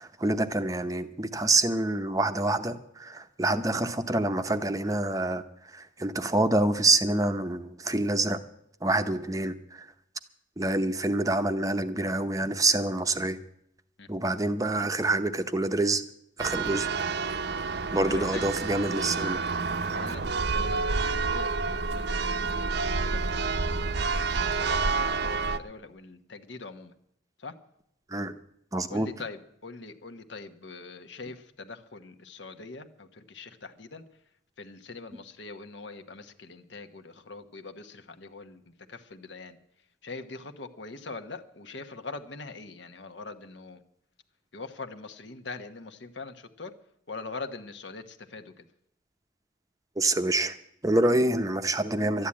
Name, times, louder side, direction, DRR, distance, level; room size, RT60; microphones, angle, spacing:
voice 1, 0.0-8.4 8.8-9.9 10.6-13.4 14.1-16.0 16.4-16.9 17.9-19.4 28.1-28.3 28.7-29.1 50.0-50.6 50.8-52.3, right 2 dB, 15° right, 9 dB, 0.7 m, -26 dB
Church bell, 16.4-25.6, right 4 dB, 55° right, 0.7 m, -29 dB
voice 2, 18.1-18.4 19.8-20.2 20.5-23.8 24.3-26.9 27.4-27.6 28.9-34.0 34.6-39.6 40.0-43.8 44.5-46.7 47.1-48.7, left 3 dB, 65° left, 7 dB, 1.1 m, -43 dB
13.0 x 10.5 x 8.6 m, 0.75 s
head